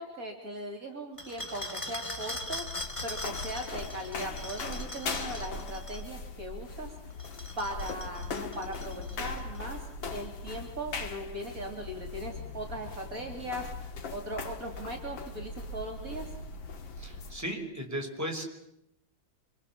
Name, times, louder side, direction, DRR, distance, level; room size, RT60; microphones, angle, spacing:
voice 1, 0.0-2.6 3.0-7.0 7.6-9.8 10.1-16.3, right 1 dB, 45° right, 3 dB, 3.6 m, -39 dB
sound 1, 1.2-6.1 7.1-9.6, left 1 dB, 15° left, 2.3 m, -40 dB
sound 2, 2.2-17.4, left 4 dB, 80° left, 2.6 m, -40 dB
voice 2, 17.0-18.4, right 1 dB, 10° right, 2 dB, 5.4 m, -36 dB
27.0 x 26.5 x 7.5 m, 0.80 s
omnidirectional pair, 2.1 m